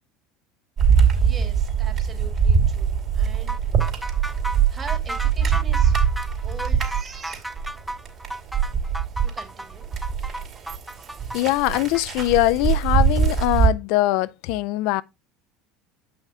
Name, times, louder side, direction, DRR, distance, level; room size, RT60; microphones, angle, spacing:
sound 1, 0.8-9.4 9.7-13.7, right 7 dB, 50° right, 2.9 m, -22 dB
voice 1, 0.9-3.7 4.7-7.6 9.2-9.9, right 5 dB, 30° right, 2.6 m, -42 dB
sound 2, 3.5-12.0, right 1 dB, 5° right, 0.5 m, -33 dB
voice 2, 11.3-15.0, left 17 dB, 70° left, 0.4 m, -22 dB
8.0 x 5.7 x 3.6 m
hypercardioid pair, 80°, 0 cm